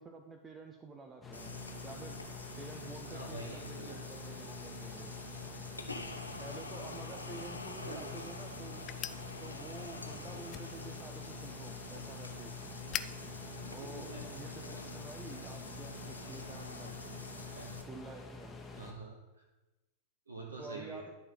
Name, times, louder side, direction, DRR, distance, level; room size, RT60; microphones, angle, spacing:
voice 1, 0.0-1.6 1.8-2.2 2.6-5.1 6.4-8.9 9.4-12.5 13.7-17.0 17.7-18.6 20.6-21.1, right 3 dB, 15° right, 3 dB, 0.6 m, -49 dB
sound 1, 1.2-18.9, left 3 dB, 15° left, 1.2 m, -48 dB
sound 2, 1.3-17.8, left 3 dB, 80° left, 0.7 m, -46 dB
voice 2, 3.1-4.0 5.9-6.3 7.8-8.2 10.0-10.2 13.6-14.4 17.5-17.7 18.8-19.2 20.3-21.0, right 3 dB, 75° right, 0 dB, 1.1 m, -47 dB
sound 3, 8.8-14.6, left 11 dB, 35° left, 0.3 m, -48 dB
11.0 x 4.2 x 5.6 m, 1.1 s
figure-of-eight pair, 90°, 0 cm